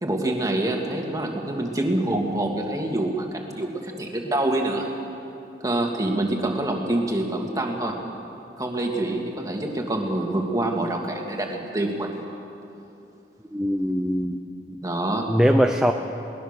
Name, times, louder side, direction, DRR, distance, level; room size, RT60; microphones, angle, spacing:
voice 1, 0.0-4.9 5.6-8.0 8.6-12.1 14.8-15.3, right 1 dB, 20° right, 1 dB, 2.2 m, -26 dB
voice 2, 13.5-14.4 15.3-15.9, equal, 5° right, 4 dB, 0.6 m, -21 dB
21.0 x 19.5 x 6.7 m, 2.8 s
head